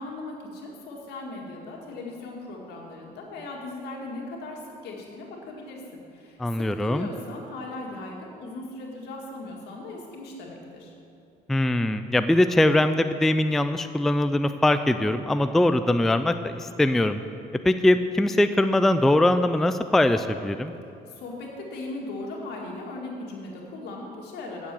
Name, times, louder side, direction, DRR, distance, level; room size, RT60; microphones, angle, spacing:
voice 1, 0.0-10.9 21.1-24.7, left 2 dB, 80° left, -1 dB, 2.1 m, -38 dB
voice 2, 6.4-7.1 11.5-17.2 17.6-20.7, left 1 dB, ahead, 10 dB, 0.3 m, -22 dB
8.3 x 7.2 x 7.6 m, 2.6 s
cardioid pair, 110°, 17 cm